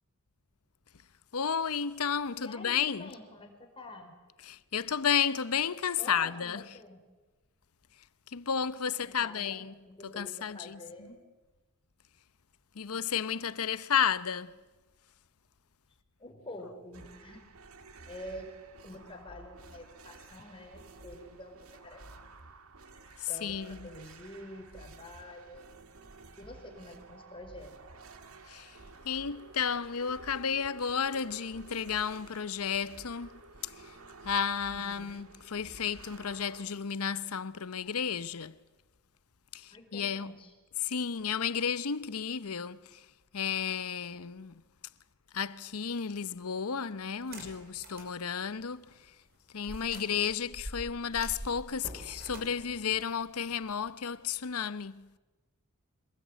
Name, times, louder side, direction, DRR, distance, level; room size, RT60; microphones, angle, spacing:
voice 1, 1.3-3.1 4.4-6.8 8.3-9.8 10.0-11.1 12.7-14.5 23.2-23.9 28.5-28.8 29.0-33.3 33.6-33.9 34.2-38.6 39.5-40.4 40.8-43.1 43.3-44.6 45.3-49.1 49.5-55.1, left 7 dB, 75° left, 0.8 m, -32 dB
voice 2, 2.4-4.1 6.0-7.0 9.0-11.3 16.2-17.4 18.1-18.5 18.8-21.6 21.8-22.0 23.3-23.6 23.8-25.7 26.3-27.7 34.7-35.3 39.7-40.5 49.9-50.0, left 1 dB, 25° left, 4.9 m, -47 dB
sound 1, 16.9-36.6, right 3 dB, 70° right, 1.9 m, -52 dB
sound 2, 47.1-48.1 48.6-48.7 49.6-53.9, right 1 dB, 45° right, 5.6 m, -45 dB
26.5 x 20.0 x 9.2 m
head